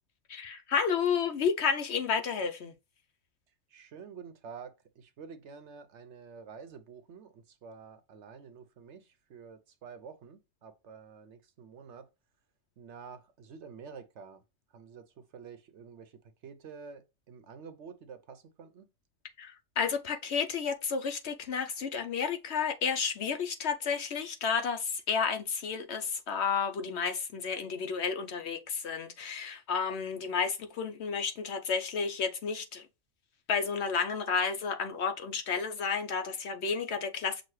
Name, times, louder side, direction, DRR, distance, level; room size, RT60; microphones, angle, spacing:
voice 1, 0.3-2.7 19.4-32.9 33.5-37.4, left 6 dB, 65° left, 0.8 m, -31 dB
voice 2, 3.7-12.1 12.8-14.4 14.7-18.9, right 6 dB, 65° right, 0.9 m, -49 dB
6.1 x 2.4 x 3.1 m
omnidirectional pair, 1.4 m